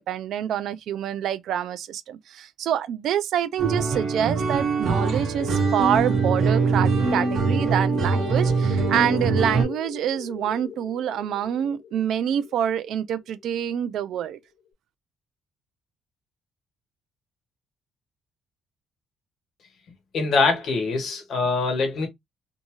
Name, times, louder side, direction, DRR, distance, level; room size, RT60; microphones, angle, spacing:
voice 1, 0.0-14.4, right 10 dB, 65° right, 0.3 m, -26 dB
sound 1, 3.6-9.6, right 4 dB, 45° right, 1.0 m, -23 dB
sound 2, 5.4-13.7, left 7 dB, 85° left, 1.0 m, -37 dB
voice 2, 20.1-22.1, left 4 dB, 50° left, 1.1 m, -23 dB
2.6 x 2.3 x 2.8 m
cardioid pair, 155°, 0 cm